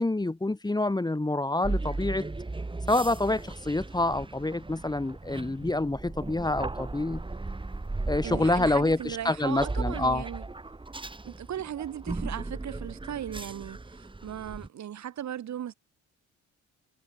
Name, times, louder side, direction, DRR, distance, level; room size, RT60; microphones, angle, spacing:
voice 1, 0.0-2.3 2.9-7.2 8.1-10.2, left 2 dB, 15° left, 2.5 m, -27 dB
sound 1, 1.6-14.7, right 2 dB, 15° right, 2.8 m, -36 dB
voice 2, 8.2-10.4 11.2-15.7, right 10 dB, 65° right, 6.1 m, -37 dB
cardioid pair, 90°, 30 cm